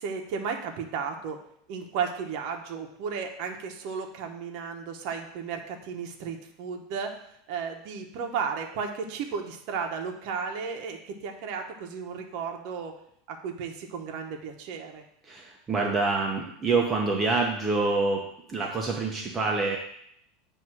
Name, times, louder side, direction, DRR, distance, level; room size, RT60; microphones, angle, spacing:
voice 1, 0.0-1.4 1.7-7.2 7.5-12.9 13.3-15.0, right 6 dB, 55° right, 3 dB, 0.9 m, -34 dB
voice 2, 15.3-19.8, right 3 dB, 20° right, 0 dB, 0.7 m, -26 dB
7.7 x 2.7 x 6.0 m, 0.71 s
supercardioid pair, 150°, 0 cm